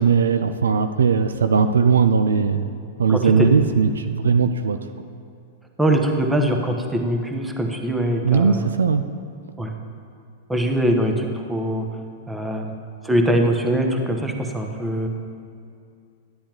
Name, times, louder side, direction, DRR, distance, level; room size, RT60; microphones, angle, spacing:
voice 1, 0.0-2.7 3.0-4.8 8.2-9.0, right 6 dB, 70° right, 9 dB, 0.4 m, -18 dB
voice 2, 3.1-3.6 5.8-8.7 9.6-9.7 10.5-11.9 12.3-12.7 13.0-15.1, right 1 dB, 5° right, 3 dB, 1.0 m, -22 dB
11.5 x 10.0 x 3.0 m, 2.4 s
figure-of-eight pair, 100°, 0 cm